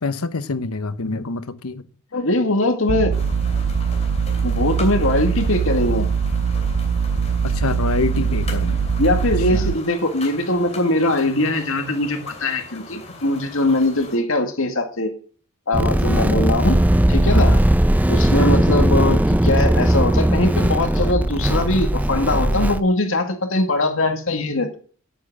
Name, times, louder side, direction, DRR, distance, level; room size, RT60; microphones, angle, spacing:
voice 1, 0.0-1.8 7.4-8.8 9.5-9.8 17.3-17.6 18.4-18.7, left 3 dB, 85° left, 0.9 m, -26 dB
voice 2, 2.1-3.1 4.4-6.1 9.0-15.1 15.7-16.8 17.1-17.5 18.1-24.8, left 2 dB, 65° left, 2.1 m, -21 dB
sound 1, 2.9-9.7, right 6 dB, 85° right, 0.5 m, -22 dB
sound 2, 3.1-14.2, left 3 dB, 30° left, 2.8 m, -39 dB
sound 3, 15.7-22.8, right 1 dB, 5° right, 0.4 m, -18 dB
9.0 x 8.8 x 6.5 m
head